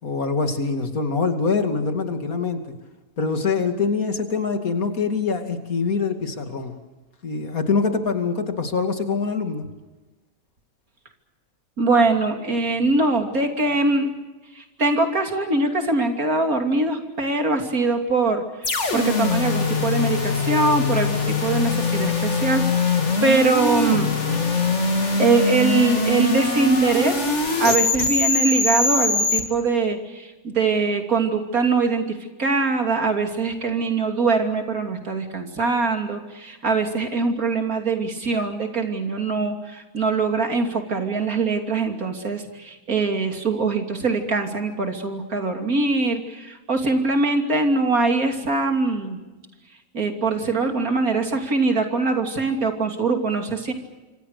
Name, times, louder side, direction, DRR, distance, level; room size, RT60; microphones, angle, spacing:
voice 1, 0.0-2.7 3.2-6.8 7.2-9.7, left 4 dB, 75° left, 6 dB, 3.0 m, -24 dB
voice 2, 11.8-14.1 14.5-22.7 22.9-24.9 25.2-27.2 27.6-49.2 49.9-53.7, right 3 dB, 80° right, 5 dB, 3.4 m, -22 dB
sound 1, 18.6-29.4, left 3 dB, 55° left, 2.8 m, -22 dB
26.5 x 25.5 x 6.7 m, 1.2 s
omnidirectional pair, 1.5 m